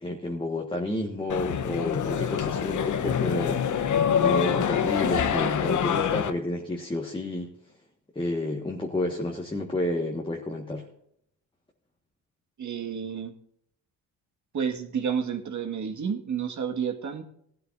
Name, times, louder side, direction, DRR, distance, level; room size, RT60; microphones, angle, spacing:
voice 1, 0.0-3.6 4.2-7.5 8.1-10.8, left 1 dB, 10° left, 0 dB, 1.6 m, -30 dB
sound 1, 1.3-6.3, left 8 dB, 45° left, 1.0 m, -25 dB
voice 2, 12.6-13.3 14.5-17.2, right 7 dB, 45° right, 5 dB, 1.8 m, -30 dB
17.0 x 12.5 x 2.6 m, 0.72 s
cardioid pair, 90°, 40 cm